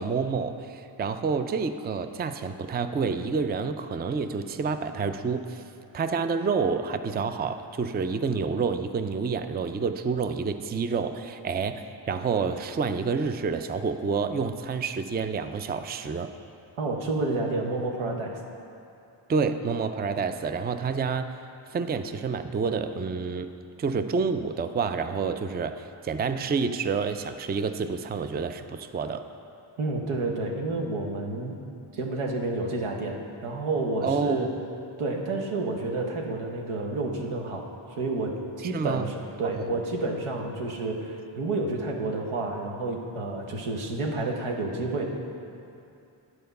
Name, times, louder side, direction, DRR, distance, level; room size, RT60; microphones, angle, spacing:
voice 1, 0.0-5.6 5.9-16.3 19.3-21.4 21.7-23.5 23.8-29.3 34.0-34.5 38.6-39.1 39.7-39.8, right 5 dB, 20° right, 9 dB, 0.4 m, -28 dB
voice 2, 16.8-18.4 29.8-31.6 31.9-34.5 35.0-37.7 38.0-45.1, right 2 dB, 85° right, 1 dB, 1.0 m, -30 dB
9.2 x 4.7 x 6.6 m, 2.7 s
cardioid pair, 45°, 48 cm